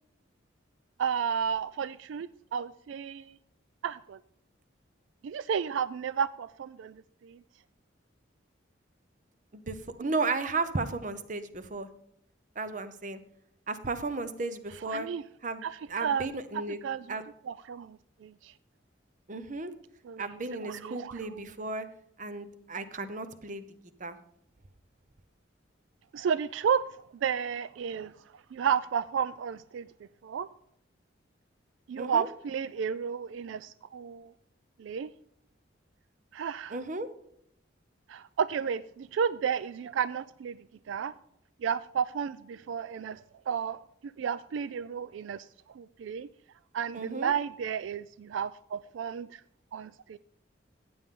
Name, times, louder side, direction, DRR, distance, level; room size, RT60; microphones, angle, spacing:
voice 1, 1.0-3.3 3.8-4.2 5.2-7.4 14.9-15.2 15.6-16.4 16.8-17.0 17.5-18.5 20.1-20.2 20.6-21.4 26.1-26.8 27.2-28.1 28.5-29.9 30.2-30.5 31.9-34.3 34.8-35.1 36.3-36.8 38.1-40.6 40.9-41.1 41.6-43.8 44.2-46.3 46.7-49.4 49.7-50.2, right 7 dB, 80° right, 0.3 m, -32 dB
voice 2, 9.5-11.9 12.6-13.2 13.7-15.1 15.4-16.8 17.1-17.2 19.3-19.7 20.2-21.9 22.2-23.7 24.0-24.2 32.0-32.3 36.7-37.1 46.9-47.3, right 3 dB, 40° right, 0.8 m, -34 dB
15.0 x 8.6 x 3.7 m
head